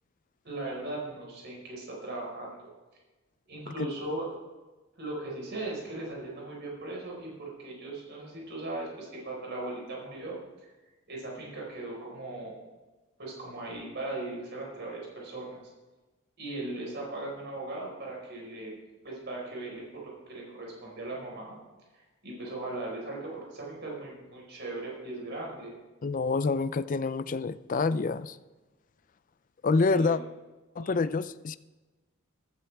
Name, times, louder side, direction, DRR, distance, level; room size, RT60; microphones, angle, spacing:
voice 1, 0.4-2.7 3.5-4.3 5.0-10.4 11.1-12.6 13.2-15.6 16.4-18.7 19.0-21.6 21.9-25.7 29.9-30.2 30.8-31.1, right 2 dB, 50° right, -2 dB, 4.7 m, -38 dB
voice 2, 26.0-28.4 29.6-30.2 30.8-31.6, left 4 dB, 40° left, 14 dB, 0.4 m, -27 dB
15.0 x 13.0 x 3.5 m, 1.2 s
head